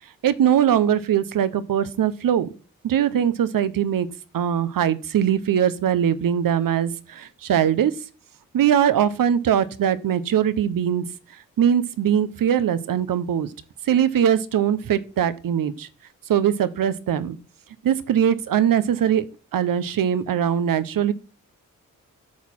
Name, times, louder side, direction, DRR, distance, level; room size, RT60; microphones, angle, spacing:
voice 1, 0.2-2.5 2.8-4.1 4.3-7.9 8.5-11.1 11.6-13.5 13.9-15.9 16.3-17.4 17.8-19.2 19.5-21.1, right 9 dB, 75° right, 15 dB, 1.0 m, -21 dB
11.0 x 4.3 x 7.4 m, 0.37 s
cardioid pair, 70°, 34 cm